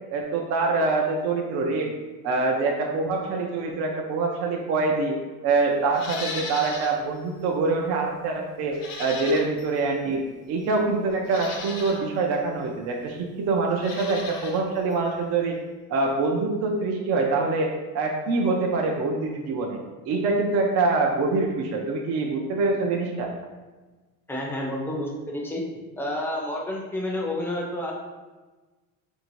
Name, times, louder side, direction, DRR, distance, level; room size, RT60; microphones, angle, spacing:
voice 1, 0.1-1.9 2.2-5.2 5.4-15.6 15.9-19.8 20.1-23.3, right 3 dB, 45° right, 0 dB, 0.5 m, -25 dB
Livestock farm animals working animals, 5.9-7.0 7.4-7.5 8.7-9.8 10.6-10.7 11.2-12.0 13.7-14.6 14.9-15.0, left 4 dB, 75° left, 0.8 m, -36 dB
voice 2, 24.3-25.6 26.0-27.9, left 1 dB, 5° left, -2 dB, 0.5 m, -30 dB
3.4 x 2.7 x 4.5 m, 1.3 s
cardioid pair, 160°, 35 cm